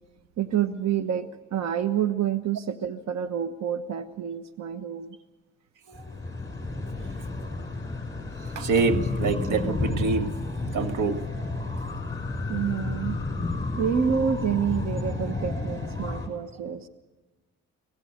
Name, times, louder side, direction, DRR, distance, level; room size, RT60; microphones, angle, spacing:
voice 1, 0.4-5.2 12.5-13.2 13.8-16.9, right 8 dB, 65° right, 9 dB, 1.2 m, -28 dB
sound 1, 5.9-16.3, left 2 dB, 10° left, 6.0 m, -31 dB
voice 2, 5.9-6.2 7.0-7.5 8.4-11.2, right 4 dB, 85° right, 8 dB, 1.7 m, -27 dB
23.5 x 18.5 x 6.6 m, 1.2 s
cardioid pair, 90°, 30 cm